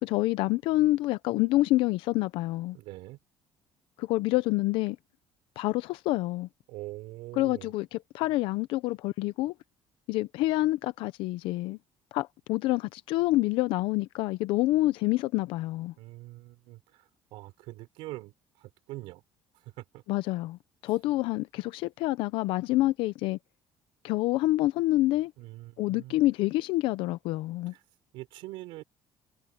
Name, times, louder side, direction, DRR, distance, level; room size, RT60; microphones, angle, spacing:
voice 1, 0.0-2.8 4.0-5.0 5.6-6.5 7.4-9.5 10.1-11.8 12.1-15.9 20.1-23.4 24.0-25.3 25.8-27.7, left 18 dB, 80° left, 0.6 m, -27 dB
voice 2, 2.7-3.2 6.7-7.7 16.0-19.2 19.6-20.0 25.4-26.2 27.7-27.8 28.1-28.8, right 18 dB, 90° right, 3.7 m, -43 dB
cardioid pair, 155°, 9 cm